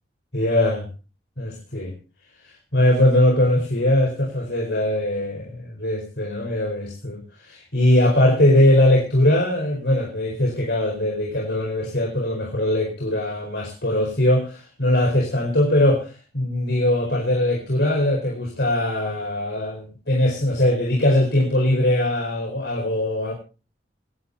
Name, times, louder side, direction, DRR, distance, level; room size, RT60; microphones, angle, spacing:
voice 1, 0.3-0.9 1.4-1.9 2.4-23.3, left 1 dB, 70° left, 0 dB, 4.7 m, -21 dB
26.0 x 11.5 x 2.8 m, 0.33 s
head